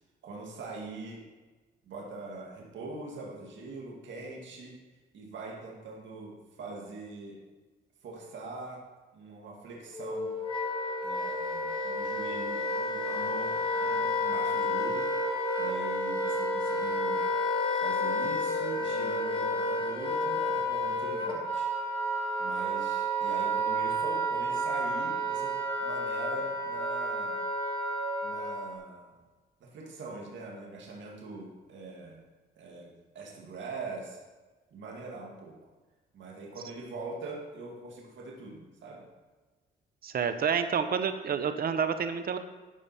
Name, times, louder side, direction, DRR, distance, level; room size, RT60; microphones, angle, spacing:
voice 1, 0.2-1.2 1.8-4.8 5.1-7.4 8.0-8.8 9.1-10.3 11.0-15.1 15.6-17.2 17.8-21.7 22.4-27.3 28.2-29.2 29.6-32.2 32.6-34.2 34.7-35.6 36.1-39.1, right 3 dB, 70° right, -2 dB, 2.1 m, -43 dB
Wind instrument woodwind instrument, 9.9-28.8, equal, 25° left, 1.9 m, -30 dB
voice 2, 40.0-42.4, right 7 dB, 50° right, 9 dB, 0.8 m, -29 dB
12.0 x 5.0 x 4.3 m, 1.2 s
cardioid pair, 90°, 20 cm